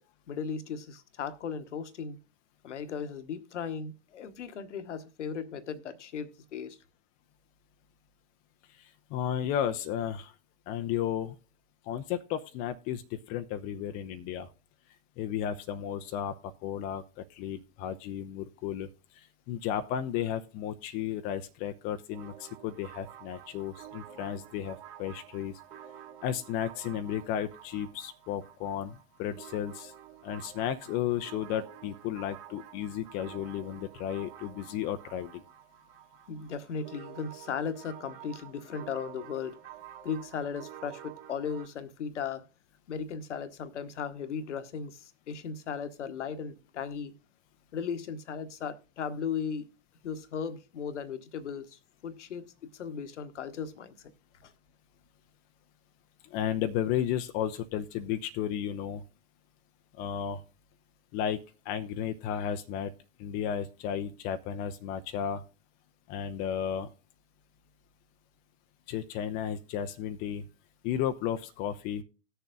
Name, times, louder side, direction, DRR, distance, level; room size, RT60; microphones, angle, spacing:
voice 1, 0.3-2.2 2.6-6.8 36.3-39.6 40.0-42.5 42.9-47.1 47.7-49.7 50.0-53.9 54.4-54.5, left 6 dB, 60° left, 1.1 m, -37 dB
voice 2, 8.8-10.3 10.7-11.4 11.8-14.5 15.2-18.9 19.1-25.5 26.2-29.9 30.2-35.4 56.3-59.0 59.9-60.4 61.1-61.4 61.7-62.9 63.2-65.4 66.1-66.9 68.9-70.4 70.8-72.0, left 9 dB, 20° left, 0.5 m, -33 dB
sound 1, 22.1-41.7, right 11 dB, 40° right, 3.0 m, -50 dB
18.5 x 6.8 x 2.4 m
figure-of-eight pair, 95°, 40 cm